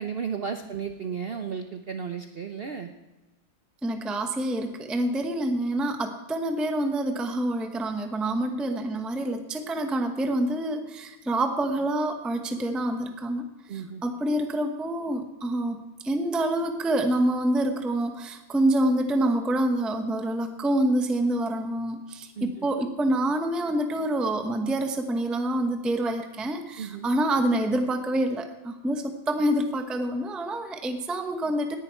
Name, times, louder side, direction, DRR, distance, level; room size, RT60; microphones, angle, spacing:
voice 1, 0.0-2.9 13.7-14.0 22.4-22.7 26.8-27.1, right 6 dB, 60° right, 6 dB, 0.6 m, -34 dB
voice 2, 3.8-31.8, right 1 dB, ahead, 6 dB, 0.5 m, -27 dB
18.5 x 10.5 x 4.5 m, 1.1 s
omnidirectional pair, 1.9 m